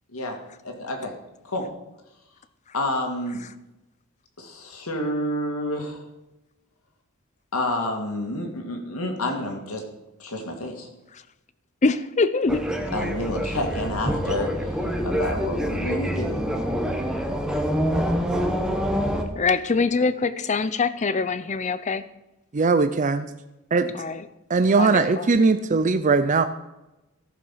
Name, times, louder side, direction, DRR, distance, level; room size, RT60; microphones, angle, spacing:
voice 1, 0.6-1.1 1.4-1.7 2.7-3.4 4.4-6.0 7.5-9.8 10.2-10.9 12.9-16.5, left 1 dB, 75° left, 3 dB, 2.2 m, -29 dB
voice 2, 11.8-12.6 19.3-22.0 23.9-24.2 24.8-25.3, left 4 dB, 30° left, 14 dB, 0.5 m, -24 dB
sound 1, 12.5-19.2, equal, 5° right, 1.1 m, -26 dB
voice 3, 22.5-23.2 23.7-23.9 24.5-26.4, right 4 dB, 35° right, 10 dB, 0.4 m, -20 dB
14.5 x 6.8 x 5.7 m, 0.98 s
head